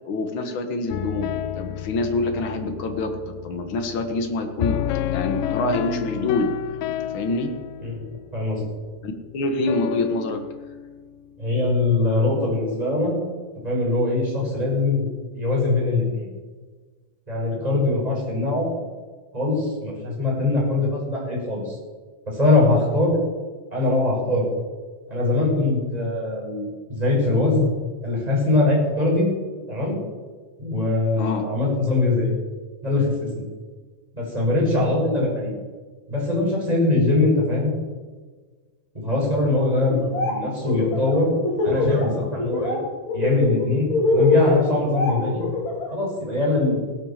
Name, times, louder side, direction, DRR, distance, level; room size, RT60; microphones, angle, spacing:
voice 1, 0.0-4.8 5.1-6.5 7.0-7.5 9.0-10.4 31.2-31.4, left 2 dB, 60° left, 5 dB, 1.3 m, -26 dB
sound 1, 0.9-11.7, left 11 dB, 85° left, 1.9 m, -31 dB
voice 2, 8.3-8.6 11.4-13.1 13.6-15.1 15.3-16.3 17.3-18.7 19.3-21.8 22.3-23.2 23.7-24.5 25.1-27.7 28.0-29.3 29.7-30.0 30.6-32.3 32.8-33.4 34.1-35.5 36.1-37.7 38.9-41.3 41.6-42.8 43.1-45.4 45.9-46.8, left 2 dB, 10° right, -4 dB, 5.9 m, -22 dB
Laughter, 39.9-40.3 40.6-42.0 42.4-42.8 43.1-45.9, left 3 dB, 30° left, 3.9 m, -22 dB
17.0 x 10.5 x 7.4 m, 1.4 s
omnidirectional pair, 4.6 m